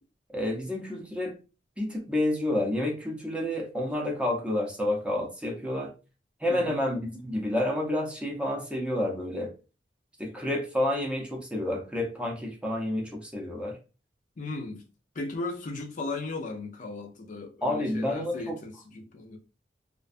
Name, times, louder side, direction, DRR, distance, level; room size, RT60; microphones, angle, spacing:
voice 1, 0.3-1.4 1.8-5.9 6.4-9.5 10.2-13.8 17.6-18.6, left 1 dB, 5° right, 0.6 m, -29 dB
voice 2, 6.5-6.8 14.4-14.8 15.1-19.4, left 3 dB, 45° left, 0.4 m, -36 dB
2.4 x 2.2 x 2.4 m
head